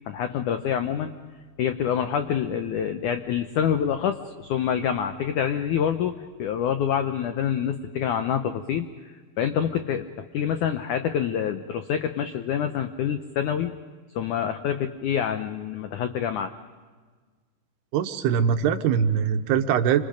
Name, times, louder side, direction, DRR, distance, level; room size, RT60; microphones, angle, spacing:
voice 1, 0.1-1.1 1.6-8.9 9.4-13.7 14.1-16.5, left 8 dB, 80° left, 8 dB, 1.7 m, -26 dB
voice 2, 17.9-20.0, right 8 dB, 80° right, 7 dB, 3.0 m, -22 dB
29.0 x 26.0 x 5.2 m, 1.4 s
omnidirectional pair, 4.8 m